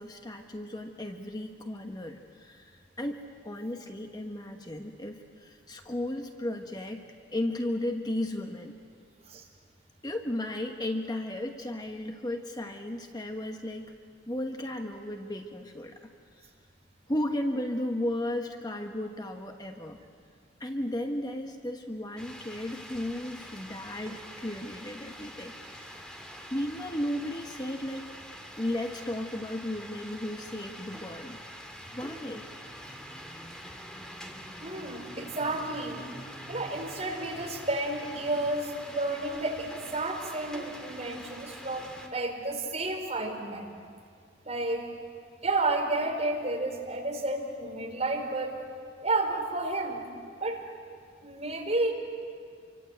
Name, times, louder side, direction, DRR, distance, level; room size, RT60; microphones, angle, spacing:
voice 1, 0.0-7.0 7.3-8.8 10.0-13.9 14.3-16.4 17.1-20.0 20.6-26.0 26.5-28.2 28.6-31.4 31.9-32.5, left 1 dB, 25° left, 4 dB, 1.3 m, -35 dB
sound 1, 22.2-42.1, equal, 5° left, 2.4 m, -45 dB
voice 2, 34.6-36.0 36.5-43.7 44.4-44.9 45.4-48.6 49.0-50.1 50.4-50.6 51.2-51.9, right 2 dB, 40° right, 1 dB, 4.2 m, -31 dB
28.0 x 24.5 x 8.0 m, 2.1 s
head